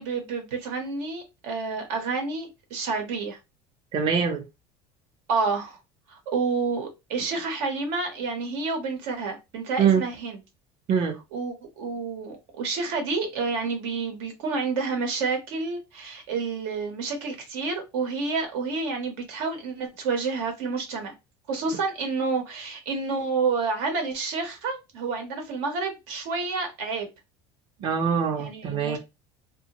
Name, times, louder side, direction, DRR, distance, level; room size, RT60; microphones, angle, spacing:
voice 1, 0.0-3.4 5.3-5.8 6.1-10.4 11.3-21.1 21.5-27.1 28.4-29.0, right 4 dB, 85° right, 0.9 m, -29 dB
voice 2, 3.9-4.4 9.8-10.0 10.9-11.2 27.8-29.0, right 7 dB, 35° right, 0.6 m, -23 dB
2.6 x 2.2 x 2.8 m
cardioid pair, 140°, 13 cm